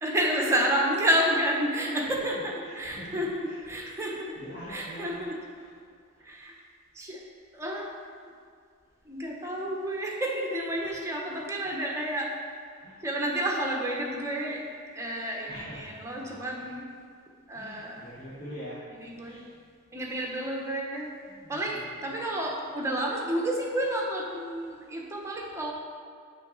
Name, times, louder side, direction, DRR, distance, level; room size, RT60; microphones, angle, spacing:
voice 1, 0.0-4.4 4.7-5.4 6.2-6.5 6.9-7.2 7.5-7.9 9.0-12.3 13.0-14.6 14.9-16.9 17.5-18.0 19.0-19.4 19.9-21.1 21.5-25.7, right 1 dB, 15° right, -1 dB, 1.1 m, -30 dB
voice 2, 2.6-3.7 4.0-5.2 5.6-5.7 6.1-6.2 12.0-12.1 12.8-13.0 15.4-16.7 17.5-18.8 19.2-19.5 21.3-22.1, equal, 45° left, -10 dB, 1.7 m, -45 dB
9.1 x 6.1 x 4.0 m, 2.2 s
head